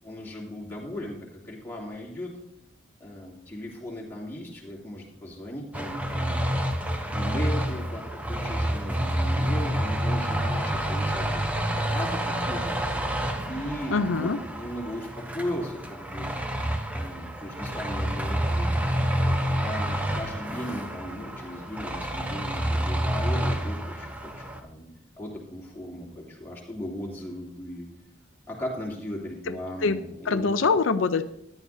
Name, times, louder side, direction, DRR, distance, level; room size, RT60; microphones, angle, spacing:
voice 1, 0.0-2.4 3.0-6.5 7.1-11.4 11.7-12.7 13.5-16.3 16.9-18.8 19.6-24.9 25.2-27.9 28.5-30.5, left 1 dB, 10° left, -5 dB, 2.8 m, -37 dB
sound 1, 5.7-24.6, equal, 5° right, 0.8 m, -28 dB
voice 2, 13.9-14.4 29.5-29.6 29.8-30.0 30.3-31.3, left 4 dB, 90° left, 10 dB, 0.6 m, -24 dB
14.0 x 10.5 x 2.7 m, 0.78 s
head